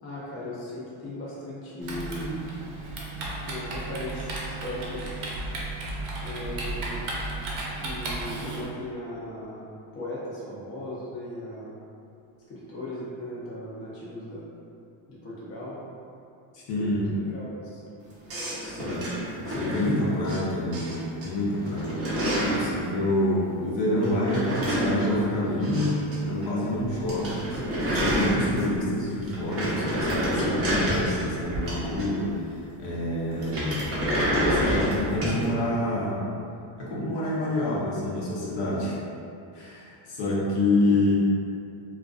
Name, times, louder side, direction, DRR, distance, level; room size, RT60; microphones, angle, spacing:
voice 1, 0.0-2.5 3.4-5.2 6.2-7.0 7.8-11.8 12.5-14.5 15.1-15.8 16.7-17.8 40.9-41.0, left 1 dB, 30° left, -8 dB, 0.5 m, -37 dB
Typing, 1.8-8.7, right 2 dB, 90° right, 0.7 m, -34 dB
voice 2, 16.5-17.1 18.6-19.1 19.5-22.1 22.4-27.4 27.9-33.9 34.3-36.3 36.8-39.0 39.5-41.1, left 1 dB, 60° left, -6 dB, 0.7 m, -27 dB
sound 1, 18.3-20.4 20.7-21.3 21.5-22.7 24.0-26.2 26.4-26.5 26.8-26.9 27.1-28.8 29.2-32.3 33.4-35.4, equal, 30° right, 0.5 m, -28 dB
2.4 x 2.2 x 2.3 m, 2.6 s
cardioid pair, 135°, 49 cm